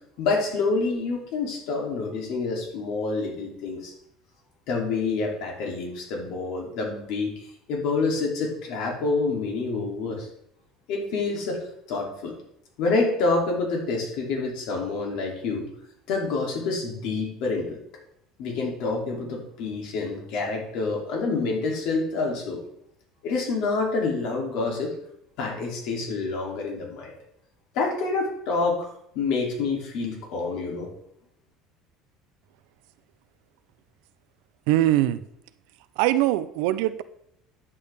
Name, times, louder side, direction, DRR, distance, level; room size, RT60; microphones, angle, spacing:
voice 1, 0.2-3.9 4.7-10.3 10.9-12.3 12.8-15.7 16.1-17.8 18.4-22.6 23.2-25.0 25.4-27.1 27.7-28.9 29.1-30.9, left 3 dB, 65° left, 0 dB, 2.9 m, -27 dB
voice 2, 34.7-35.2 36.0-37.0, right 15 dB, 80° right, 14 dB, 0.6 m, -22 dB
10.0 x 8.2 x 3.5 m, 0.74 s
cardioid pair, 150°, 0 cm